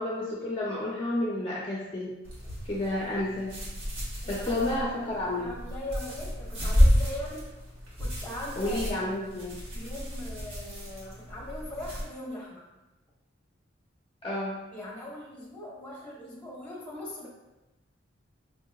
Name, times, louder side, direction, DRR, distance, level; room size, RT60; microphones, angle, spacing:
voice 1, 0.0-2.1 2.7-3.6 4.3-5.5 8.6-9.5 14.2-14.6, left 1 dB, 25° left, -5 dB, 0.4 m, -30 dB
sound 1, 2.2-12.0, equal, 80° right, 1.1 m, -30 dB
voice 2, 4.2-7.5 8.0-8.9 9.7-12.7 14.7-17.3, left 1 dB, 5° left, -5 dB, 0.8 m, -40 dB
4.9 x 2.8 x 2.3 m, 1.0 s
head